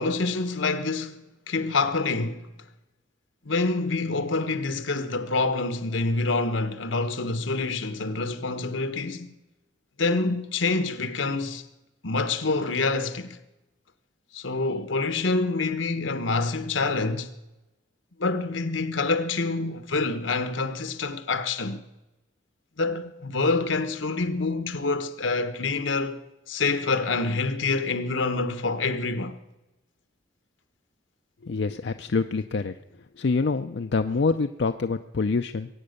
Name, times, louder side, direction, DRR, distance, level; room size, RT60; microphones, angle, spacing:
voice 1, 0.0-2.4 3.4-9.3 10.0-11.6 12.0-13.4 14.3-17.3 18.2-21.8 22.8-26.2 26.5-29.3, left 3 dB, 85° left, 1.2 m, -26 dB
voice 2, 31.4-32.7 33.2-35.7, left 4 dB, 60° left, 0.5 m, -26 dB
22.0 x 8.8 x 6.6 m
head